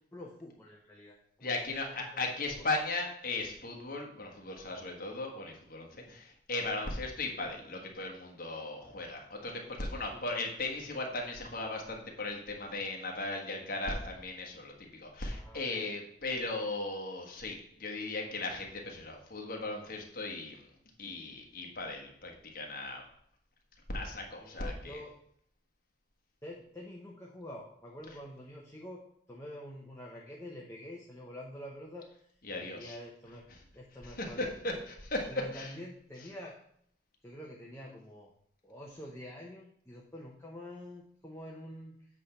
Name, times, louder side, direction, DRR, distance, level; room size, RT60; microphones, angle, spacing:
voice 1, 0.1-2.3 2.6-2.7 9.7-10.2 15.3-15.9 24.4-25.1 26.4-29.0 29.3-32.1 32.6-33.4 33.7-34.5 35.3-36.5 37.2-38.3 38.6-42.1, left 1 dB, 15° left, -2 dB, 0.7 m, -47 dB
voice 2, 1.4-20.6 21.0-23.0 23.9-25.0 32.5-33.0 34.0-35.3 35.5-35.7, left 2 dB, 50° left, 1 dB, 1.4 m, -37 dB
8.2 x 3.3 x 5.7 m, 0.69 s
head